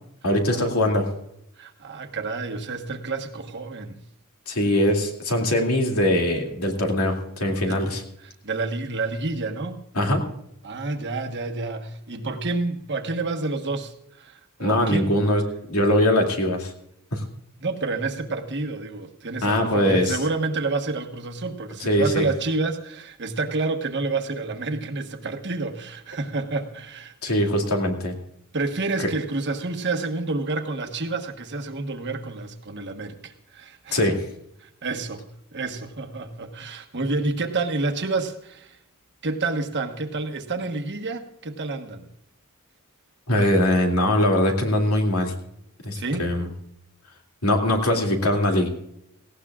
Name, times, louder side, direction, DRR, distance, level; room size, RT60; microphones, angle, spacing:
voice 1, 0.2-1.1 4.5-8.0 9.9-10.2 14.6-15.4 15.7-16.7 17.1-17.2 19.4-20.2 21.8-22.2 27.2-28.2 29.0-29.1 33.9-34.2 43.3-45.3 45.8-46.5 47.4-48.7, left 1 dB, 75° left, 2 dB, 2.5 m, -22 dB
voice 2, 1.6-4.0 7.7-7.9 8.2-9.8 10.6-15.1 17.6-27.3 28.5-34.1 34.6-35.3 35.5-38.8 39.2-42.1 45.9-46.4, right 3 dB, 50° right, 5 dB, 1.3 m, -29 dB
18.0 x 16.5 x 2.4 m, 0.79 s
head